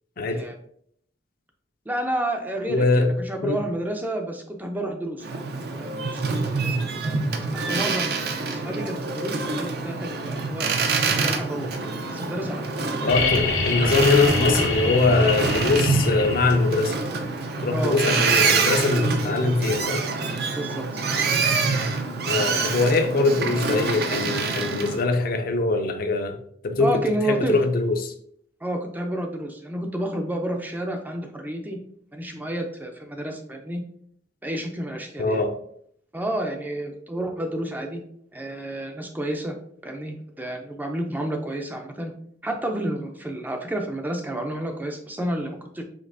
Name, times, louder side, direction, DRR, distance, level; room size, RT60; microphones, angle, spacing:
voice 1, 1.9-5.4 5.8-6.8 7.0-7.2 7.7-11.7 12.1-12.6 13.0-13.4 17.7-18.0 20.5-21.0 26.8-27.6 28.6-31.8 32.1-33.8 34.4-35.4 36.1-38.0 38.3-39.5 39.8-42.1 42.4-45.8, right 1 dB, 10° right, 3 dB, 0.4 m, -30 dB
voice 2, 2.7-3.1 3.4-3.6 13.0-16.9 17.6-20.0 22.3-26.4 26.6-26.9 27.3-28.1 35.2-35.5, left 3 dB, 50° left, 6 dB, 0.5 m, -22 dB
Boat Water vehicle, 5.2-25.0, right 4 dB, 60° right, 0.5 m, -26 dB
sound 1, 13.1-16.9 18.6-18.7, left 4 dB, 75° left, 1.0 m, -26 dB
5.1 x 3.4 x 2.6 m, 0.66 s
head